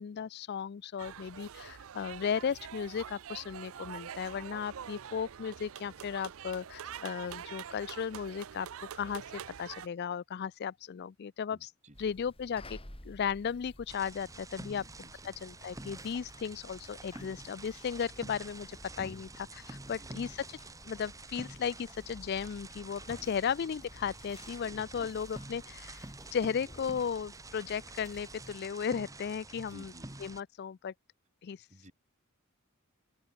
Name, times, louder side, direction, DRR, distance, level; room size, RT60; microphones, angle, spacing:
voice 1, 0.0-8.7 8.9-11.7 12.0-12.8 13.0-14.8 15.2-20.6 20.9-29.9 30.2-30.9 31.4-31.7, left 7 dB, 45° left, 0.3 m, -36 dB
sound 1, 1.0-9.9, right 8 dB, 65° right, 0.5 m, -45 dB
voice 2, 11.5-12.1 14.7-15.3 19.9-20.3 23.2-23.5 24.6-25.2 29.6-30.1 31.7-31.9, right 1 dB, 30° right, 5.5 m, -56 dB
sound 2, 11.9-28.5, left 1 dB, 25° left, 3.7 m, -54 dB
sound 3, 13.9-30.4, right 2 dB, 15° right, 1.5 m, -48 dB
open air
head